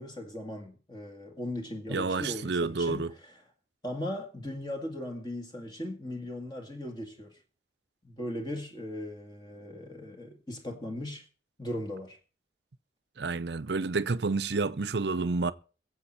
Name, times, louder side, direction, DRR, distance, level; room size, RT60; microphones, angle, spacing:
voice 1, 0.0-3.5 3.8-7.4 8.0-11.3 11.6-12.2, left 1 dB, 25° left, 2.1 m, -38 dB
voice 2, 1.9-3.1 13.2-15.5, right 4 dB, 70° right, 0.6 m, -29 dB
22.5 x 7.9 x 4.4 m
head